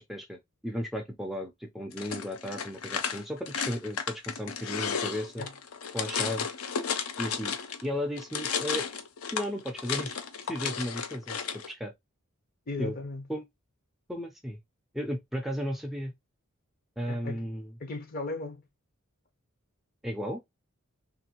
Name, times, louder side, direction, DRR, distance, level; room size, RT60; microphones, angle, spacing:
voice 1, 0.0-5.5 5.9-6.5 7.2-7.6 7.8-8.9 9.3-11.9 12.8-13.0 13.3-13.4 14.1-14.6 14.9-16.1 17.0-17.7 20.0-20.4, equal, ahead, 0.3 m, -35 dB
sound 1, 1.9-7.9 8.2-11.7, left 6 dB, 85° left, 0.5 m, -33 dB
voice 2, 12.7-13.3 17.0-17.4 17.8-18.6, left 2 dB, 40° left, 0.6 m, -36 dB
3.0 x 2.5 x 2.8 m
head